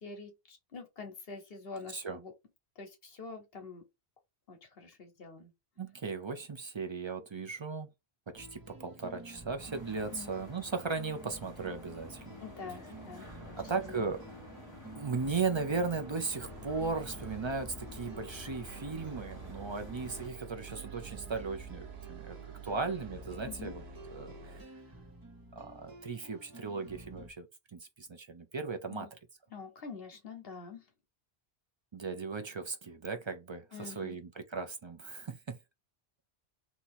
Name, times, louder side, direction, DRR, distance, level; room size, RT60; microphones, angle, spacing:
voice 1, 0.0-2.3 2.8-3.8 4.5-5.5 10.1-10.3 12.4-13.5 13.8-14.1 23.4-23.7 28.9-29.1 29.5-30.8 33.7-34.2, left 4 dB, 65° left, 1.1 m, -46 dB
voice 2, 5.8-7.9 8.3-12.4 13.2-14.2 15.0-22.4 22.6-23.8 24.1-24.6 25.5-27.5 27.7-29.1 31.9-35.6, right 4 dB, 35° right, 0.4 m, -37 dB
The -After Breaking Up on Park Bridge- Theme, 8.4-27.3, right 1 dB, 20° right, 1.0 m, -51 dB
sound 1, 9.6-20.3, left 1 dB, 15° left, 1.7 m, -51 dB
sound 2, 16.4-24.6, right 4 dB, 85° right, 1.0 m, -48 dB
2.8 x 2.8 x 4.1 m
omnidirectional pair, 1.1 m